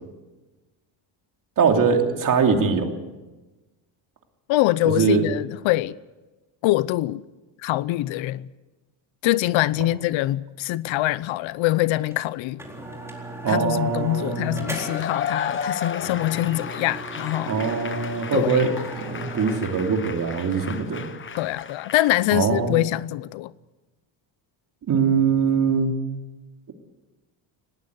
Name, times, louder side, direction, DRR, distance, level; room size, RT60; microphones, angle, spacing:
voice 1, 1.6-2.9 4.8-5.3 13.4-14.6 17.4-18.7 19.0-21.1 22.3-22.7 24.9-25.9, right 6 dB, 40° right, 3.0 m, -22 dB
voice 2, 4.5-6.0 6.6-7.2 7.6-8.5 9.2-12.6 13.5-17.5 18.3-18.7 21.4-23.5, left 16 dB, 70° left, 0.8 m, -24 dB
sound 1, 12.1-12.2 12.6-15.2 15.5-15.7 16.0-19.6, right 2 dB, 5° right, 4.1 m, -37 dB
Cheering / Applause / Crowd, 14.5-22.2, left 6 dB, 25° left, 1.1 m, -34 dB
20.0 x 18.0 x 8.1 m
cardioid pair, 135°, 49 cm